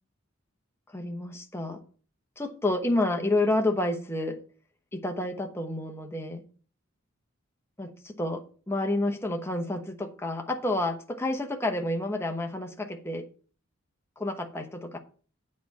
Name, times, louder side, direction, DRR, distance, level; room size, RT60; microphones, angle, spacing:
voice 1, 0.9-1.8 2.4-4.4 4.9-6.5 7.8-13.3 14.2-15.0, left 2 dB, 10° left, 4 dB, 1.0 m, -29 dB
8.6 x 4.2 x 7.3 m, 0.40 s
head